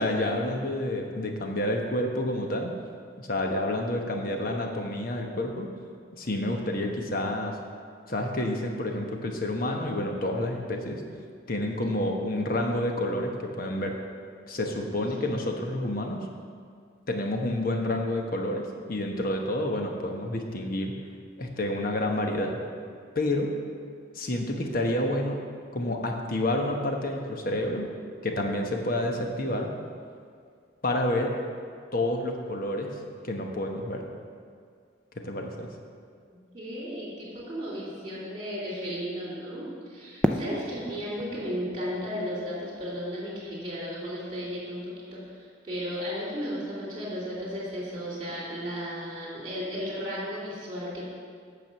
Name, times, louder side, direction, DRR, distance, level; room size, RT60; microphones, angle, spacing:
voice 1, 0.0-2.7 3.2-5.7 6.1-7.6 8.1-11.0 11.5-14.0 14.5-16.3 17.1-20.9 21.4-22.6 23.1-23.5 24.1-25.4 25.7-27.9 28.2-29.7 30.8-31.4 31.9-33.0 33.2-34.0 35.1-35.7 40.2-40.4, left 1 dB, 45° left, 2 dB, 1.0 m, -29 dB
voice 2, 14.9-15.3 36.3-51.1, equal, 25° right, -6 dB, 3.0 m, -35 dB
Fireworks, 40.2-43.3, equal, 5° left, 0.4 m, -32 dB
9.1 x 6.1 x 6.9 m, 2.1 s
head